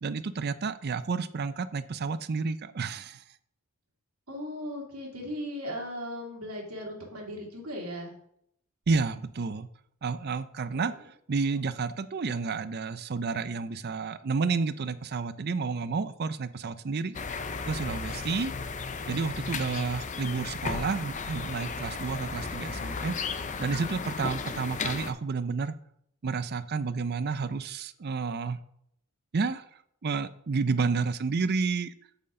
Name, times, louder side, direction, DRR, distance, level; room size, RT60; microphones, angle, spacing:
voice 1, 0.0-3.2 8.9-9.7 10.0-17.2 17.7-18.5 19.1-23.1 23.6-25.7 26.2-28.6 29.3-29.7 30.0-31.9, right 4 dB, 45° right, 14 dB, 0.5 m, -30 dB
voice 2, 4.3-8.1 10.7-10.9, equal, 80° right, -1 dB, 2.7 m, -37 dB
sound 1, 17.1-25.1, left 4 dB, 35° left, 0.5 m, -35 dB
8.0 x 7.7 x 3.7 m, 0.71 s
head